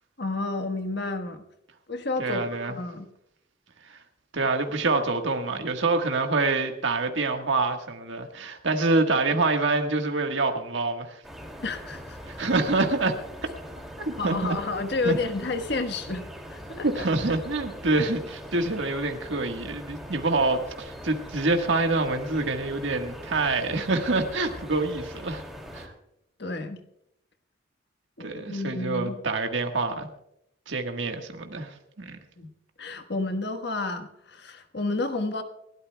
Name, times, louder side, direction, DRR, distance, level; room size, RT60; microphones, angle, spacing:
voice 1, 0.2-1.4 1.9-3.1 11.6-12.4 14.2-16.2 16.5-17.1 26.4-26.8 28.2-29.2 32.4-32.5 32.8-35.4, left 3 dB, 60° left, 6 dB, 1.4 m, -31 dB
voice 2, 2.2-2.7 3.9-4.0 4.3-11.2 12.3-13.2 14.0-14.6 15.0-15.2 16.8-25.4 25.7-25.9 28.2-30.1 30.7-32.2, right 3 dB, 80° right, 4 dB, 1.5 m, -26 dB
sound 1, 11.2-25.9, equal, ahead, 2.4 m, -42 dB
29.5 x 12.5 x 2.3 m, 0.80 s
head